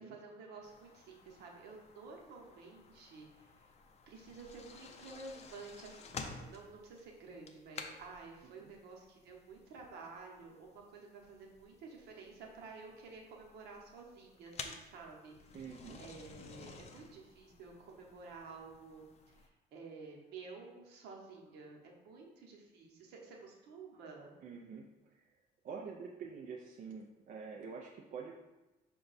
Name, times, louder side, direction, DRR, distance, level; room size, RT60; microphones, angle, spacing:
voice 1, 0.0-3.7 4.1-15.6 16.0-24.3, right 4 dB, 80° right, 0 dB, 0.9 m, -52 dB
sound 1, 0.6-19.5, left 5 dB, 40° left, 0.5 m, -53 dB
voice 2, 15.5-16.0 24.4-25.2 25.6-28.3, right 5 dB, 55° right, 0 dB, 0.5 m, -47 dB
5.1 x 2.3 x 4.0 m, 1.1 s
cardioid pair, 110°, 17 cm